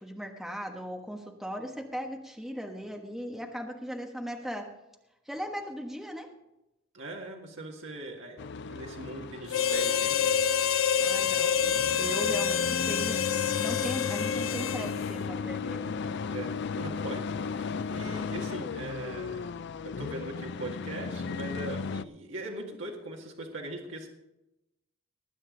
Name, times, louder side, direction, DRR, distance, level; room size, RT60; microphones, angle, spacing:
voice 1, 0.0-4.7 5.3-6.3 11.0-15.9, equal, ahead, 2 dB, 1.2 m, -38 dB
voice 2, 6.9-11.5 12.3-12.4 16.3-19.5 19.8-24.1, right 2 dB, 60° right, -1 dB, 2.0 m, -41 dB
sound 1, 8.4-22.0, left 5 dB, 55° left, 0.4 m, -36 dB
Harmonica, 9.5-15.1, left 8 dB, 75° left, 0.8 m, -27 dB
19.5 x 9.1 x 3.9 m, 0.90 s
head